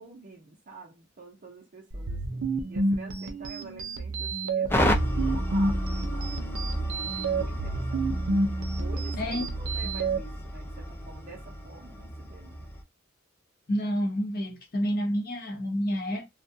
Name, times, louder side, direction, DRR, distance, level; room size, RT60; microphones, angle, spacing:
voice 1, 0.0-6.9 7.3-8.1 8.8-12.7, right 3 dB, 45° right, 0.6 m, -48 dB
sound 1, 1.9-10.2, right 3 dB, 85° right, 0.6 m, -30 dB
sound 2, 4.7-12.8, equal, 10° left, 0.4 m, -31 dB
voice 2, 13.7-16.3, equal, 50° left, 0.8 m, -29 dB
2.3 x 2.1 x 2.6 m
head